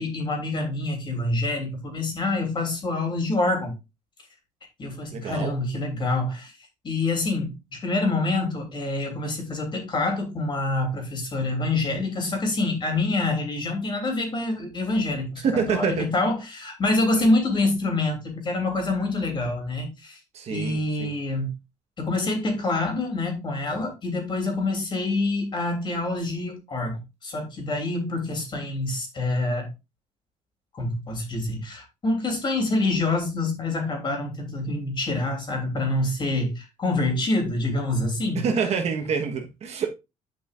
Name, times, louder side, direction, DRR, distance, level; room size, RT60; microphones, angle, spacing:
voice 1, 0.0-3.7 4.8-6.5 6.8-15.4 15.7-20.2 20.5-21.5 22.0-29.7 30.7-38.4, left 2 dB, 35° left, 3.2 m, -26 dB
voice 2, 5.1-5.6 15.4-16.1 17.1-17.3 20.3-21.1 38.3-39.9, right 6 dB, 55° right, 1.3 m, -27 dB
10.0 x 5.4 x 2.5 m
cardioid pair, 120°, 13 cm